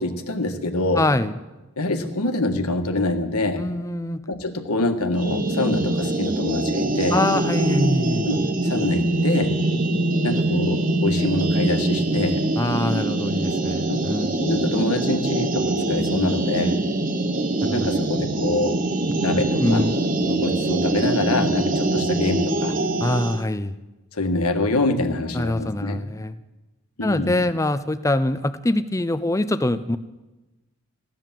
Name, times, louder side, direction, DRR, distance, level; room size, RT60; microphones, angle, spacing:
voice 1, 0.0-1.0 1.8-3.6 4.3-7.2 8.3-9.6 10.2-12.4 13.9-16.8 17.7-18.8 19.2-19.9 20.2-22.8 24.1-26.0 27.0-27.4, left 2 dB, 85° left, 7 dB, 1.6 m, -25 dB
voice 2, 1.0-1.3 3.6-4.2 7.1-8.3 12.6-14.3 17.6-17.9 19.6-19.9 23.0-23.8 25.3-26.4 27.0-30.0, left 1 dB, 15° left, 11 dB, 0.5 m, -24 dB
sound 1, 5.1-23.4, right 2 dB, 35° right, 0.8 m, -23 dB
15.5 x 12.0 x 7.5 m, 1.1 s
head